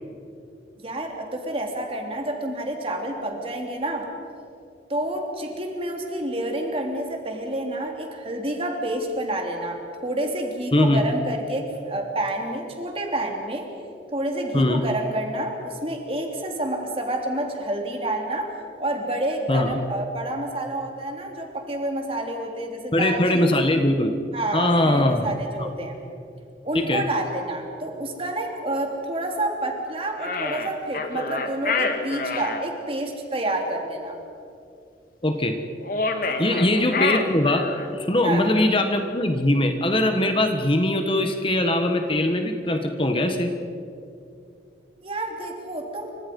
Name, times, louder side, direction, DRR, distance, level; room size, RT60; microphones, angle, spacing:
voice 1, 0.8-4.1 4.9-13.7 14.1-18.5 18.8-23.7 24.3-26.0 26.6-34.2 36.3-36.6 38.2-38.5 45.0-46.1, right 1 dB, 30° right, 2 dB, 3.2 m, -29 dB
voice 2, 19.5-19.8 22.9-24.1 24.5-25.3 25.6-25.7 26.7-27.0 35.2-35.5 36.4-37.7 37.9-43.5, left 1 dB, 30° left, 5 dB, 1.4 m, -21 dB
sound 1, 30.2-32.6 35.8-38.0, left 3 dB, 50° left, 1.8 m, -27 dB
29.0 x 25.5 x 5.4 m, 2.5 s
head